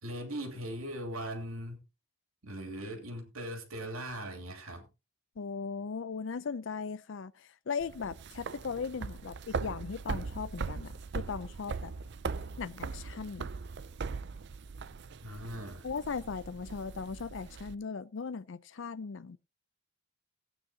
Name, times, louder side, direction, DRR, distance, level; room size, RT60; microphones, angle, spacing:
voice 1, 0.0-1.8 2.4-4.9 15.2-15.9, right 1 dB, 75° right, 3.0 m, -39 dB
voice 2, 5.4-11.9 12.6-13.5 15.8-19.4, left 5 dB, 60° left, 0.5 m, -38 dB
sound 1, 7.8-17.7, right 4 dB, 55° right, 0.5 m, -40 dB
17.0 x 8.9 x 2.8 m
head